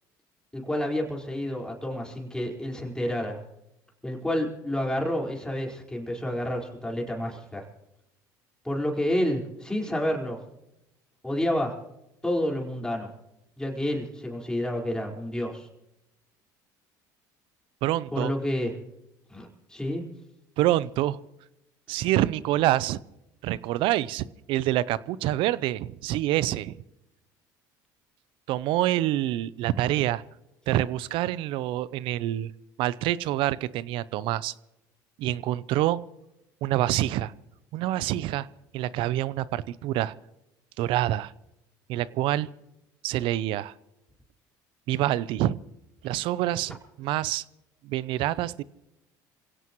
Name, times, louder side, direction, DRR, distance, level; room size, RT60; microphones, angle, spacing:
voice 1, 0.5-3.4 4.0-7.6 8.6-10.4 11.2-11.7 12.2-13.1 13.6-15.7 18.1-18.7 19.3-20.0, left 1 dB, 10° left, -1 dB, 4.7 m, -29 dB
voice 2, 17.8-18.3 20.6-21.2 21.9-23.0 23.4-26.7 28.5-30.2 30.7-32.5 32.8-34.5 35.2-36.0 36.6-37.3 37.7-38.5 38.7-40.1 40.8-41.3 41.9-42.5 43.0-43.7 44.9-45.6 46.0-47.4 47.8-48.6, right 14 dB, 65° right, 19 dB, 0.6 m, -26 dB
27.5 x 17.0 x 3.1 m, 0.91 s
supercardioid pair, 80°, 9 cm